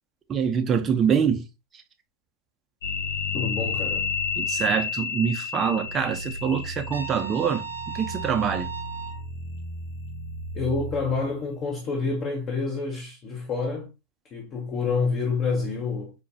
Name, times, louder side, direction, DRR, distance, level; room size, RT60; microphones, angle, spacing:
voice 1, 0.3-1.4 4.4-7.6 7.9-8.7, right 7 dB, 25° right, 0.6 m, -25 dB
sound 1, 2.8-11.4, left 5 dB, 75° left, 0.9 m, -32 dB
voice 2, 3.3-4.1 10.5-13.9 14.3-16.1, left 4 dB, 35° left, 0.8 m, -28 dB
Trumpet, 6.9-9.2, right 7 dB, 85° right, 0.5 m, -36 dB
4.9 x 2.2 x 2.7 m
hypercardioid pair, 90°, 0 cm